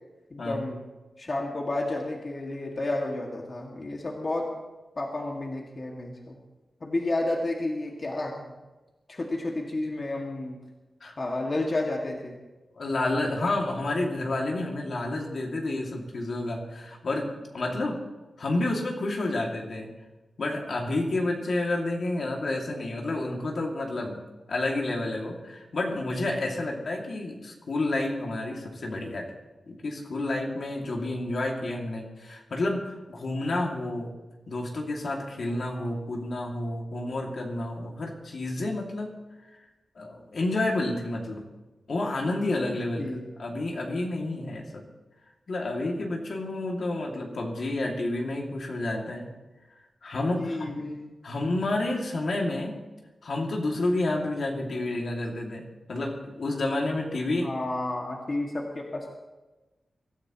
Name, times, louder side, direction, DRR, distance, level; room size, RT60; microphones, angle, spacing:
voice 1, 0.3-0.8 1.2-4.5 5.0-6.3 6.8-8.5 9.1-10.6 11.2-12.4 43.0-43.2 50.2-51.1 57.4-59.1, left 2 dB, 35° left, -1 dB, 2.2 m, -31 dB
voice 2, 12.7-18.1 18.4-20.0 20.4-29.3 29.7-34.2 34.5-39.2 40.0-41.5 41.9-44.8 45.5-49.3 50.0-50.8 51.2-52.8 53.2-57.5, left 2 dB, 60° left, -1 dB, 2.5 m, -30 dB
24.5 x 14.0 x 3.1 m, 1.1 s
wide cardioid pair, 140°, 0 cm